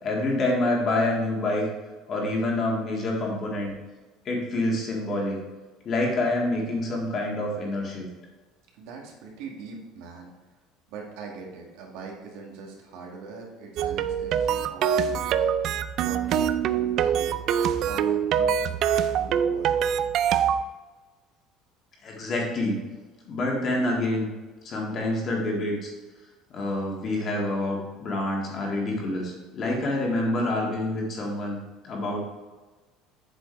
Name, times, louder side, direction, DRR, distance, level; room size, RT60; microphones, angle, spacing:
voice 1, 0.0-1.6 2.1-3.7 4.3-5.4 5.9-8.1 22.0-22.8 23.3-24.3 24.6-25.9 26.5-31.6 31.8-32.2, left 2 dB, 30° left, -2 dB, 1.8 m, -27 dB
voice 2, 8.7-10.3 10.9-17.4 17.8-18.6 19.1-19.8, right 5 dB, 75° right, 0 dB, 1.8 m, -42 dB
sound 1, 13.8-20.6, right 8 dB, 40° right, 0.3 m, -24 dB
7.9 x 6.4 x 3.3 m, 1.2 s
cardioid pair, 170°, 0 cm